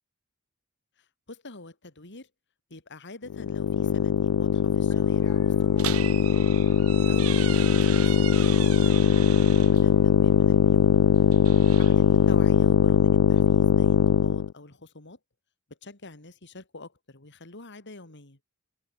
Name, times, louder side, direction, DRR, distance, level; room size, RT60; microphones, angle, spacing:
voice 1, 1.0-2.3 2.7-6.3 7.1-10.9 11.8-15.2 15.8-18.4, left 2 dB, 55° left, 3.0 m, -45 dB
sound 1, 3.3-14.5, left 7 dB, 85° left, 0.4 m, -21 dB
sound 2, 4.9-11.4, left 1 dB, 15° left, 6.8 m, -54 dB
sound 3, 5.8-9.8 11.1-12.3, right 12 dB, 85° right, 1.4 m, -37 dB
head